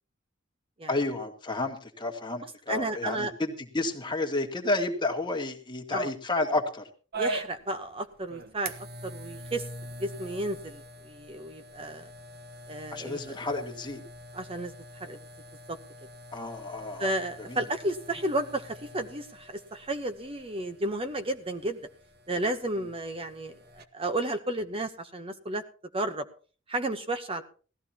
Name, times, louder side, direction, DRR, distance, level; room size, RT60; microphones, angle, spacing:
voice 1, 0.9-6.8 12.9-14.0 16.3-17.1 17.5-17.6, left 2 dB, 25° left, 3 dB, 2.0 m, -31 dB
voice 2, 2.7-3.3 5.9-6.1 7.2-8.7 9.0-9.7 10.0-12.1 12.7-13.2 14.3-15.2 15.7-15.8 17.0-21.8 22.3-25.6 25.9-26.3 26.7-27.4, right 1 dB, 25° right, 8 dB, 0.9 m, -32 dB
sound 1, 7.1-23.9, right 1 dB, 50° right, 1.2 m, -43 dB
18.0 x 14.5 x 2.9 m, 0.38 s
head